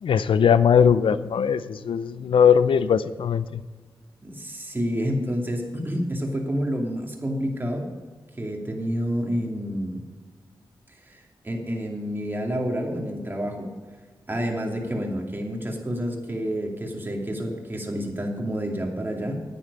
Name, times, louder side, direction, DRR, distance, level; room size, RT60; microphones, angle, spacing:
voice 1, 0.0-3.6, left 7 dB, 85° left, 14 dB, 0.5 m, -20 dB
voice 2, 4.2-7.9 8.4-10.0 11.0-13.7 14.3-19.4, equal, 25° right, 0 dB, 2.5 m, -29 dB
9.8 x 9.3 x 5.4 m, 1.4 s
cardioid pair, 60°, 9 cm